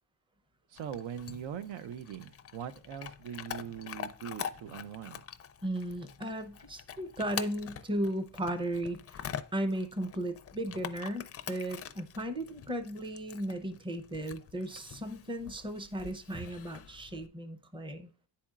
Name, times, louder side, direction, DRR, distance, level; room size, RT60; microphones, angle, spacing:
voice 1, 0.7-5.2, right 9 dB, 80° right, 0.7 m, -41 dB
Chewing mastication / Dog, 0.8-17.3, left 8 dB, 35° left, 0.4 m, -45 dB
voice 2, 5.6-18.1, right 1 dB, 10° right, 0.6 m, -36 dB
10.5 x 4.3 x 2.4 m
cardioid pair, 140°, 44 cm